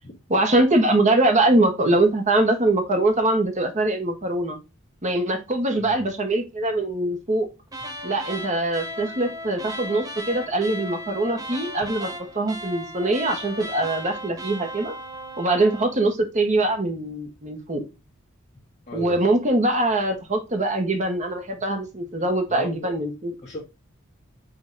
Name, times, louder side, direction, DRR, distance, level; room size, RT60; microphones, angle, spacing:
voice 1, 0.3-4.6 5.0-7.5 8.0-14.9 15.4-17.8 18.9-23.3, right 2 dB, 35° right, 1.3 m, -23 dB
sound 1, 7.7-15.9, equal, 20° right, 0.9 m, -36 dB
voice 2, 22.5-22.9 23.4-23.6, equal, 35° left, 1.6 m, -36 dB
5.3 x 3.7 x 2.7 m
head